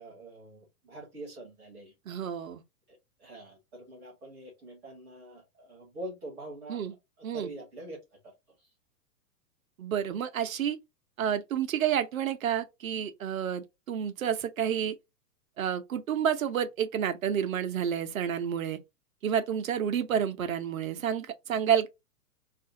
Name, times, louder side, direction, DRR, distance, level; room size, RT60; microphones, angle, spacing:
voice 1, 0.0-1.9 2.9-6.8 7.2-8.0, right 1 dB, 5° right, 0.4 m, -44 dB
voice 2, 2.1-2.6 6.7-6.9 7.2-7.5 9.8-10.8 11.2-14.9 15.6-18.8 19.2-21.9, right 9 dB, 60° right, 0.8 m, -29 dB
2.5 x 2.5 x 3.7 m
figure-of-eight pair, 110°, 47 cm